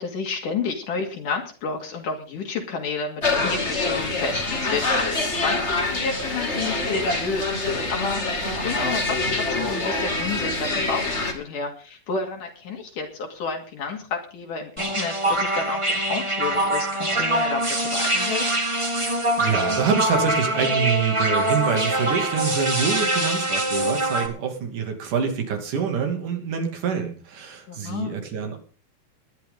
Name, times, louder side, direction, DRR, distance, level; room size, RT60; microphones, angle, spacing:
voice 1, 0.0-18.5 27.7-28.1, left 4 dB, 70° left, 1 dB, 3.9 m, -31 dB
sound 1, 3.2-11.3, left 2 dB, 20° left, 2.3 m, -25 dB
sound 2, 14.8-24.3, right 1 dB, 15° right, 1.3 m, -24 dB
voice 2, 19.4-28.6, right 6 dB, 70° right, 4 dB, 4.1 m, -26 dB
20.0 x 11.5 x 3.9 m, 0.38 s
omnidirectional pair, 3.8 m